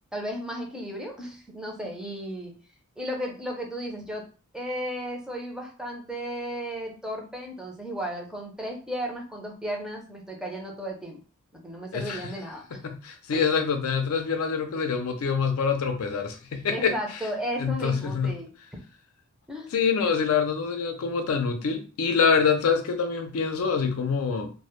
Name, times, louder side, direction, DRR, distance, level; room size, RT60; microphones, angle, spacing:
voice 1, 0.1-2.5 3.0-4.3 4.5-11.2 11.6-12.8 13.3-13.5 16.7-18.5 19.5-19.7, equal, 5° right, 0.5 m, -34 dB
voice 2, 12.7-17.0 17.6-18.4 19.7-24.5, left 5 dB, 80° left, 0.4 m, -25 dB
2.1 x 2.0 x 2.9 m
head